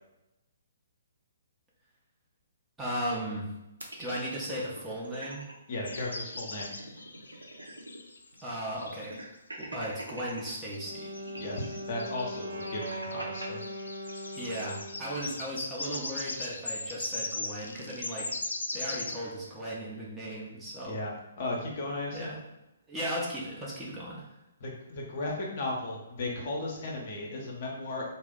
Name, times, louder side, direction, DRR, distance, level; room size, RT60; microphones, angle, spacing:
voice 1, 2.8-3.5 4.0-5.4 8.4-9.2 9.6-11.1 14.4-18.3 18.7-21.0 22.1-22.4 22.9-24.3, equal, 10° right, -6 dB, 0.7 m, -36 dB
sound 1, 3.8-5.5 5.9-6.0 6.3-8.1 8.3-8.4 8.9-10.5 11.2-13.5, right 1 dB, 80° right, 0.6 m, -44 dB
voice 2, 5.7-6.7 11.4-13.6 20.9-21.1 21.4-22.4 24.6-28.1, left 2 dB, 45° left, -2 dB, 0.7 m, -35 dB
sound 2, 5.8-9.2 9.6-9.7 10.4-19.2, left 2 dB, 70° left, 0.3 m, -39 dB
Wind instrument woodwind instrument, 10.6-15.2, equal, 55° right, 0.9 m, -40 dB
2.5 x 2.0 x 3.7 m, 0.94 s
figure-of-eight pair, 130°, 0 cm